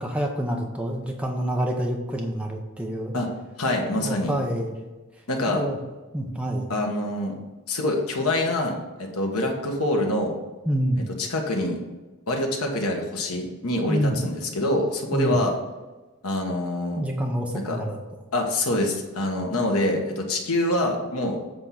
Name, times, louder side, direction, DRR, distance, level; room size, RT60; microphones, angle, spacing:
voice 1, 0.0-3.2 3.9-4.7 5.5-5.8 6.1-6.7 10.6-11.0 13.9-14.2 15.1-15.4 17.0-18.0, equal, 5° right, 0 dB, 0.6 m, -27 dB
voice 2, 3.6-4.3 5.3-5.6 6.7-7.4 7.7-10.3 11.2-11.8 12.3-15.6 16.2-17.0 17.5-17.8 18.3-21.4, left 1 dB, 85° left, 2 dB, 1.3 m, -25 dB
7.6 x 3.6 x 5.7 m, 1.2 s
head